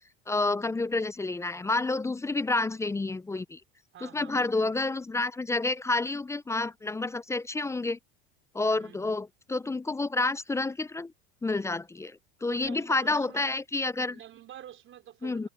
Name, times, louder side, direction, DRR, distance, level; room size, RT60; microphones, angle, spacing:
voice 1, 0.3-3.6 4.0-8.0 8.5-11.1 11.4-14.2 15.2-15.5, left 3 dB, 10° left, 0.5 m, -29 dB
voice 2, 3.9-4.6 8.7-9.2 12.5-13.6 14.1-15.5, right 11 dB, 45° right, 4.9 m, -48 dB
hypercardioid pair, 95°, 29 cm